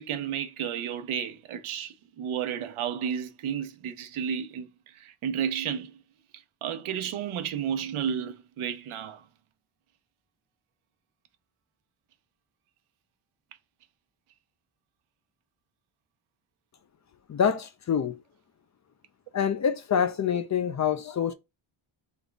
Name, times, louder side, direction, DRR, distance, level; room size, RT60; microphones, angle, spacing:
voice 1, 0.0-4.7 4.9-6.0 6.6-9.2, right 8 dB, 85° right, 0.8 m, -32 dB
voice 2, 17.3-18.2 19.3-21.3, left 7 dB, 40° left, 0.4 m, -26 dB
3.6 x 2.3 x 3.9 m
cardioid pair, 110°, 49 cm